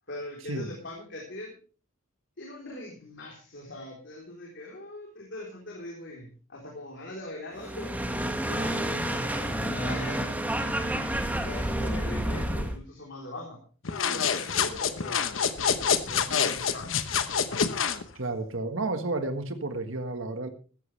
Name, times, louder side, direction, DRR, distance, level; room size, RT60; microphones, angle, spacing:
voice 1, 0.1-1.5 2.4-7.9 8.5-10.9 11.4-13.6 14.0-15.3 16.0-16.9, left 1 dB, 60° left, -1 dB, 3.8 m, -41 dB
sound 1, 7.6-12.8, right 1 dB, 10° right, 1.7 m, -29 dB
sound 2, 13.8-18.0, left 7 dB, 80° left, 1.1 m, -27 dB
voice 2, 18.1-20.5, right 2 dB, 85° right, 7 dB, 1.6 m, -31 dB
15.5 x 14.0 x 3.3 m, 0.39 s
head